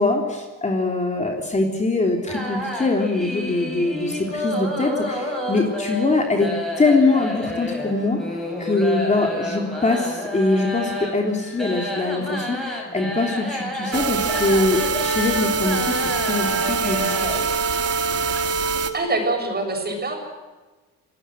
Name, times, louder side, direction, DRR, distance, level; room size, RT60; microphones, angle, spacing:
voice 1, 0.0-16.0 16.2-17.4, left 3 dB, 20° left, 2 dB, 3.4 m, -23 dB
sound 1, 2.3-17.5, equal, ahead, 7.8 m, -30 dB
the montage of noises, 13.9-18.9, right 5 dB, 45° right, 2.4 m, -24 dB
voice 2, 18.9-20.2, right 2 dB, 30° right, 3 dB, 7.6 m, -24 dB
26.5 x 18.5 x 7.9 m, 1.2 s
cardioid pair, 110°, 33 cm